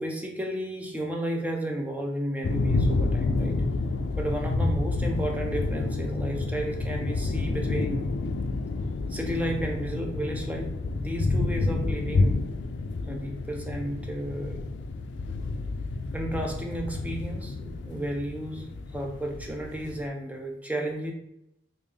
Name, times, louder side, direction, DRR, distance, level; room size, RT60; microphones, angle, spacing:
voice 1, 0.0-3.6 4.2-8.1 9.1-12.4 13.1-14.6 16.1-18.7 18.9-21.1, right 1 dB, 10° right, 2 dB, 0.4 m, -33 dB
sound 1, 2.4-20.1, left 3 dB, 85° left, 0.3 m, -29 dB
3.4 x 2.7 x 3.4 m, 0.83 s
head